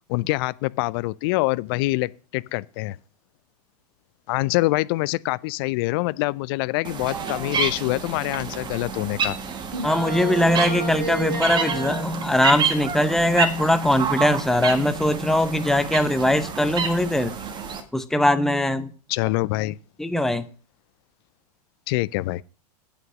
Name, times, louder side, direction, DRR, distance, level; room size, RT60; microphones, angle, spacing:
voice 1, 0.1-3.0 4.3-9.4 19.1-19.8 21.9-22.4, left 21 dB, 35° left, 0.4 m, -25 dB
sound 1, 6.9-17.8, right 5 dB, 20° right, 1.4 m, -29 dB
sound 2, 9.7-12.1, right 2 dB, 85° right, 2.1 m, -30 dB
voice 2, 9.8-17.3 17.9-18.9 20.0-20.4, left 1 dB, ahead, 0.7 m, -21 dB
8.4 x 6.6 x 6.4 m
figure-of-eight pair, 100°, 21 cm